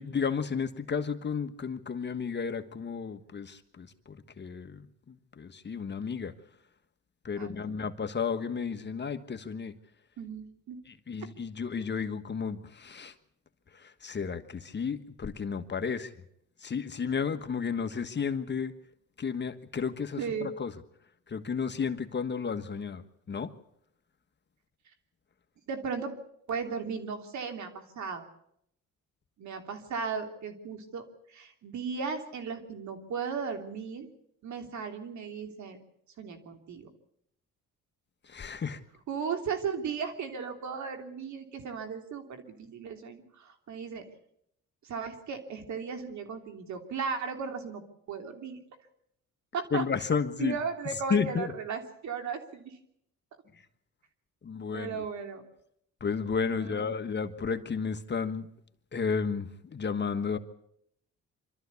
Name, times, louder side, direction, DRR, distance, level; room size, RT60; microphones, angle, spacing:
voice 1, 0.0-6.3 7.2-9.7 10.9-13.1 13.7-16.1 16.6-18.7 19.2-20.7 21.3-23.0 23.3-23.5 38.2-38.8 49.7-50.6 51.1-51.5 54.4-55.0 56.0-58.5 58.9-60.4, left 6 dB, 35° left, 8 dB, 1.5 m, -32 dB
voice 2, 7.4-7.7 10.2-10.8 20.2-20.5 25.7-26.1 26.5-28.3 29.4-34.1 34.4-35.8 36.2-36.9 39.1-44.0 44.8-47.8 48.1-48.6 49.5-49.8 50.4-52.8 54.7-55.4 56.5-56.9, right 6 dB, 70° right, 5 dB, 3.2 m, -36 dB
25.5 x 13.0 x 8.4 m, 0.75 s
cardioid pair, 90°, 30 cm